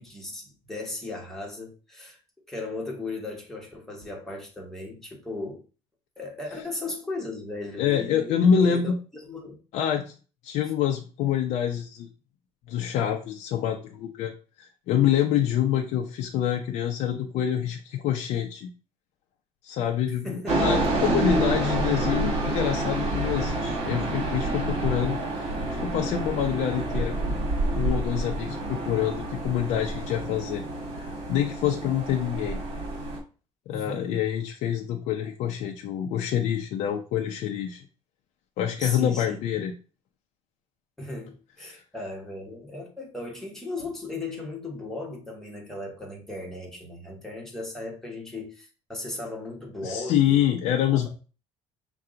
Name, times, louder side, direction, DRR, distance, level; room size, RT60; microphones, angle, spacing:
voice 1, 0.0-2.2 2.5-5.6 6.2-8.9 9.3-9.6 20.2-21.1 33.7-34.2 38.8-39.4 41.0-50.4 50.9-51.1, left 2 dB, 5° left, 1.3 m, -37 dB
voice 2, 7.8-9.0 9.7-10.1 10.4-12.1 12.7-14.3 14.6-18.7 19.6-27.4 27.8-30.6 31.0-32.6 33.7-37.8 38.6-39.7 41.7-41.8 49.8-51.1, left 9 dB, 65° left, 0.6 m, -26 dB
sound 1, 20.5-33.2, right 2 dB, 55° right, 1.5 m, -28 dB
5.6 x 2.3 x 3.8 m
cardioid pair, 145°, 12 cm